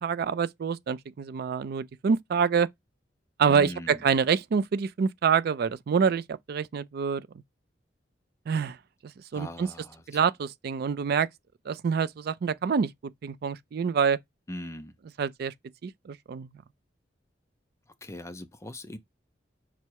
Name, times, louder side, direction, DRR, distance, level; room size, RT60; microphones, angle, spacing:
voice 1, 0.0-2.7 3.4-7.3 8.5-8.8 9.3-9.7 10.1-11.3 11.7-12.9 13.2-14.2 15.2-15.5 15.8-16.5, right 6 dB, 55° right, 0.3 m, -26 dB
voice 2, 3.5-4.0 9.3-10.0 14.5-14.9 18.0-19.0, left 1 dB, 15° left, 0.4 m, -40 dB
5.4 x 2.0 x 4.5 m
head